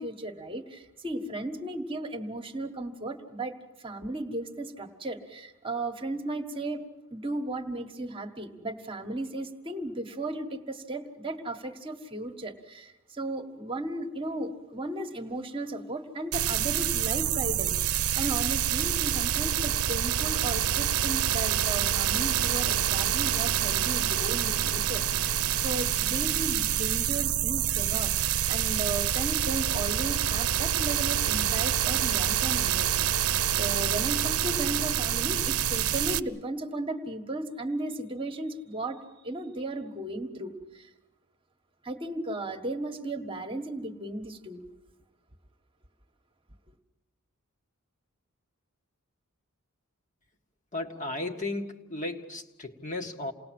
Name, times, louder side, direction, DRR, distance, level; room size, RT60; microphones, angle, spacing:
voice 1, 0.0-6.8 7.1-28.1 28.5-39.0 39.2-40.9 41.8-44.6, right 1 dB, 25° right, 4 dB, 1.5 m, -35 dB
sound 1, 16.3-36.2, right 10 dB, 75° right, 0.7 m, -27 dB
voice 2, 50.7-53.3, left 2 dB, 35° left, 3 dB, 1.9 m, -35 dB
29.0 x 19.5 x 7.7 m, 1.0 s
head